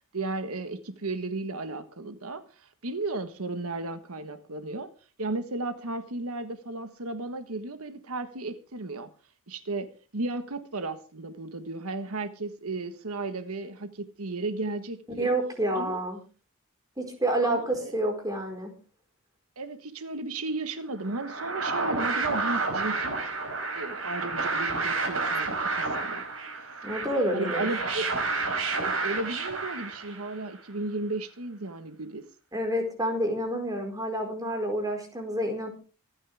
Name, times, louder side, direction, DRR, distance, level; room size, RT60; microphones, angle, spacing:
voice 1, 0.1-4.9 5.2-9.1 9.5-15.4 15.7-16.0 17.4-17.9 19.6-23.2 23.7-26.2 27.3-28.0 28.8-32.3, right 2 dB, 85° right, 1.4 m, -34 dB
voice 2, 15.2-16.2 17.0-18.7 26.8-27.7 32.5-35.7, right 1 dB, 15° right, 4.7 m, -28 dB
sound 1, 21.0-30.4, right 3 dB, 65° right, 4.6 m, -30 dB
26.0 x 9.7 x 3.6 m
head